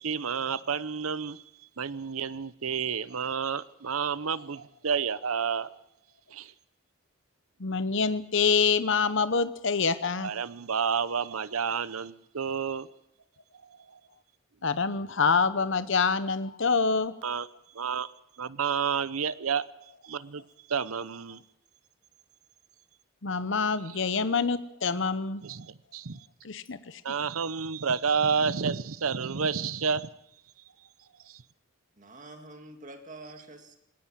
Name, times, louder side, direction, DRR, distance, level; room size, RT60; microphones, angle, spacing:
voice 1, 0.0-1.4 1.8-5.8 6.3-6.5 10.2-12.9 13.9-14.0 17.2-17.5 17.7-18.1 18.4-19.6 20.0-20.4 20.7-21.4 25.4-26.2 27.0-30.1 31.3-31.4, right 6 dB, 85° right, 16 dB, 0.8 m, -30 dB
voice 2, 7.6-10.3 14.6-17.1 23.2-25.4 26.4-27.0, left 5 dB, 60° left, 13 dB, 0.9 m, -26 dB
voice 3, 32.0-33.8, right 2 dB, 35° right, 6 dB, 2.2 m, -46 dB
20.0 x 18.5 x 7.5 m, 0.76 s
head